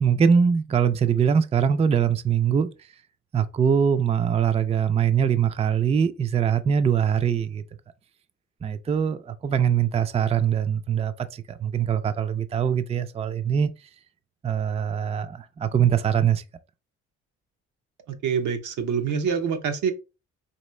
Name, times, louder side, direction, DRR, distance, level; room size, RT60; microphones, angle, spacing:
voice 1, 0.0-2.7 3.3-7.6 8.6-13.7 14.4-16.4, right 7 dB, 20° right, 0.4 m, -22 dB
voice 2, 18.1-19.9, right 6 dB, 85° right, 0.9 m, -26 dB
4.1 x 3.0 x 3.2 m
cardioid pair, 90°, 30 cm